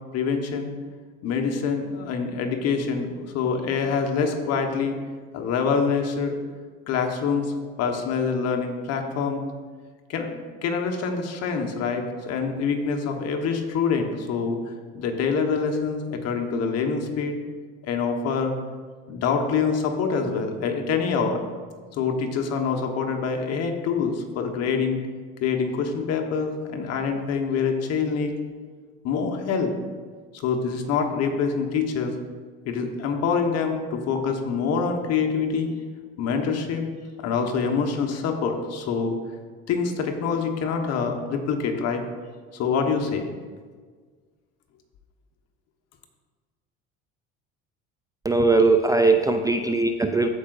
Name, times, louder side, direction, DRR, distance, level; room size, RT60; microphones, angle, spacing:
voice 1, 0.1-0.7 1.2-5.0 5.3-6.4 6.9-9.4 10.1-14.6 14.9-17.4 17.8-18.5 19.1-21.4 21.9-25.0 25.4-28.3 29.0-29.7 30.3-32.1 32.6-35.7 36.2-36.9 37.2-39.2 39.7-42.1 42.5-43.3, left 5 dB, 60° left, 4 dB, 1.1 m, -25 dB
voice 2, 48.2-50.3, right 3 dB, 10° right, 6 dB, 0.4 m, -20 dB
14.0 x 4.9 x 2.5 m, 1.5 s
supercardioid pair, 85°, 29 cm